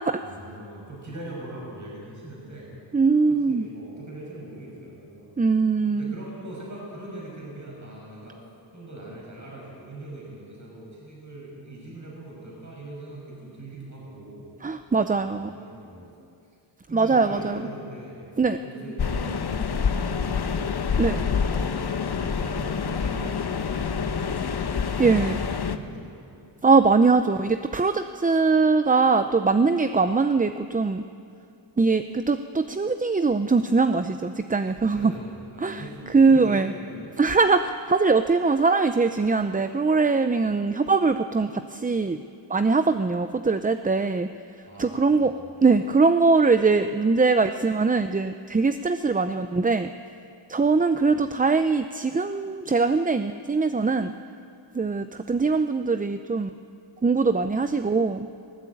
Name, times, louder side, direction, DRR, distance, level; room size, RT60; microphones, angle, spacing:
voice 1, 0.2-2.7 3.1-5.3 5.9-8.4 8.7-14.5 15.2-16.1 16.9-18.2 18.6-26.3 34.9-37.2 44.7-45.5 51.1-51.2, right 1 dB, 35° right, -3 dB, 6.2 m, -41 dB
voice 2, 2.9-3.7 5.4-6.1 14.6-15.6 16.9-17.6 18.4-18.6 21.0-21.2 25.0-25.4 26.6-31.0 31.8-35.1 35.6-36.7 37.2-42.2 42.5-44.3 44.8-45.3 45.6-49.9 50.5-54.1 54.7-56.5 57.0-58.3, right 4 dB, 20° right, 9 dB, 0.5 m, -22 dB
sound 1, 19.0-25.8, left 6 dB, 55° left, 1.0 m, -27 dB
19.5 x 18.5 x 8.5 m, 2.6 s
wide cardioid pair, 110°, 48 cm